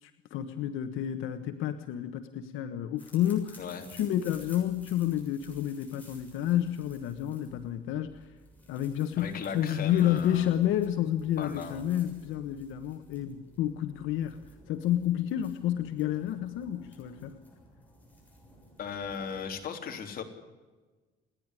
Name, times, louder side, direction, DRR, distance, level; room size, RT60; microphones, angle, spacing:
voice 1, 0.0-3.6 3.9-8.3 8.7-14.4 14.7-17.4, left 11 dB, 85° left, 8 dB, 1.3 m, -30 dB
sound 1, 3.0-19.6, equal, 10° left, 6.9 m, -56 dB
voice 2, 9.1-10.5 11.4-11.8 18.8-20.2, left 6 dB, 45° left, 3 dB, 3.6 m, -37 dB
29.0 x 11.0 x 9.8 m, 1.3 s
cardioid pair, 140°, 20 cm